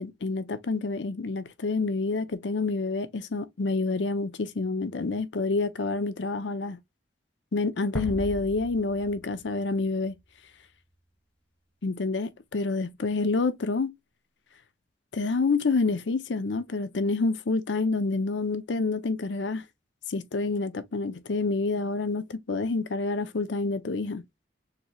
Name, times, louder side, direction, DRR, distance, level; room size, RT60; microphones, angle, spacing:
voice 1, 0.0-6.8 7.5-10.1 11.8-13.9 15.1-19.6 20.1-24.2, left 3 dB, 90° left, 0.6 m, -28 dB
sound 1, 7.9-10.9, left 1 dB, 5° left, 0.4 m, -39 dB
6.7 x 3.0 x 2.2 m
head